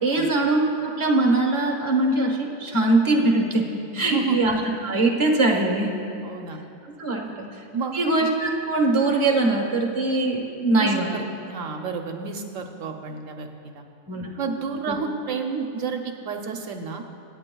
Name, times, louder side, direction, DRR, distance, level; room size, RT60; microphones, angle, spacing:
voice 1, 0.0-3.7 3.9-6.0 7.0-7.5 7.9-11.1 14.1-14.3 14.9-15.0, right 2 dB, 25° right, 0 dB, 1.2 m, -22 dB
voice 2, 4.0-4.4 6.2-6.6 7.2-7.4 7.7-7.9 10.8-13.8 14.4-17.0, right 5 dB, 75° right, 4 dB, 1.0 m, -30 dB
25.0 x 9.0 x 2.3 m, 2.7 s
omnidirectional pair, 1.4 m